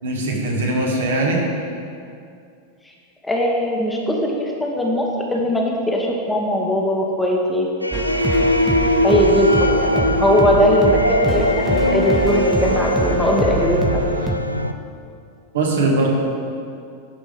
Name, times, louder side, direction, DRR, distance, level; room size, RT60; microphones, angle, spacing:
voice 1, 0.0-1.4 15.5-16.1, right 2 dB, 65° right, -1 dB, 1.6 m, -20 dB
voice 2, 3.2-7.7 9.0-14.0, equal, 5° left, -1 dB, 1.2 m, -20 dB
sound 1, 7.8-14.7, left 1 dB, 90° right, 0.4 m, -21 dB
sound 2, 7.9-14.4, right 2 dB, 10° right, 0.7 m, -25 dB
11.0 x 5.1 x 5.2 m, 2.4 s
figure-of-eight pair, 90°, 0 cm